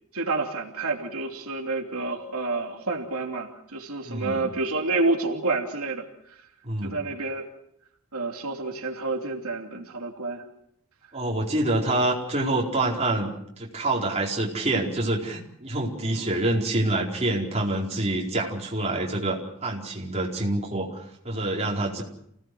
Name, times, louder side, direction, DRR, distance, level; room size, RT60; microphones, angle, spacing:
voice 1, 0.1-6.0 6.8-7.5 8.1-10.4 16.1-16.3, right 3 dB, 90° right, 2 dB, 3.0 m, -29 dB
voice 2, 4.0-4.5 6.6-6.9 11.1-13.3 13.6-22.0, right 2 dB, 30° right, -2 dB, 4.6 m, -26 dB
29.0 x 18.0 x 6.3 m, 0.73 s
head